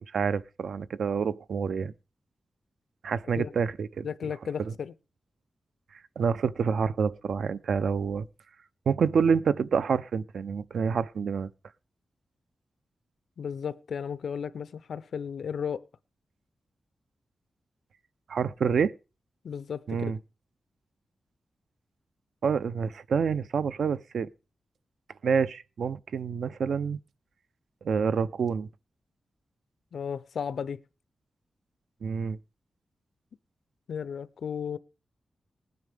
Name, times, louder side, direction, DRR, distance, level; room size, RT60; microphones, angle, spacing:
voice 1, 0.1-1.9 3.0-4.3 4.6-4.7 5.9-8.3 8.9-11.5 18.3-18.9 19.9-20.2 22.4-24.3 25.2-27.0 27.8-28.7 32.0-32.4, right 6 dB, 85° right, 0.7 m, -27 dB
voice 2, 4.0-4.9 13.4-15.8 19.4-20.1 29.9-30.8 33.9-34.8, left 7 dB, 80° left, 0.7 m, -34 dB
20.0 x 9.6 x 3.5 m
wide cardioid pair, 150°, 0 cm